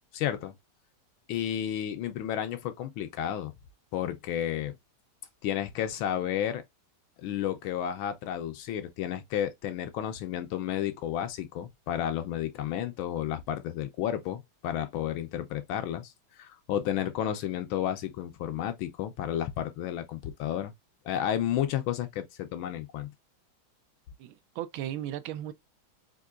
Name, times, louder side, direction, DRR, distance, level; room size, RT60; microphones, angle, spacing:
voice 1, 0.1-0.5 1.3-3.5 3.9-4.7 5.4-6.6 7.2-16.1 16.4-20.7 21.0-23.1, left 10 dB, 80° left, 1.5 m, -32 dB
voice 2, 24.2-25.5, right 11 dB, 80° right, 1.4 m, -36 dB
4.6 x 2.7 x 2.5 m
omnidirectional pair, 2.3 m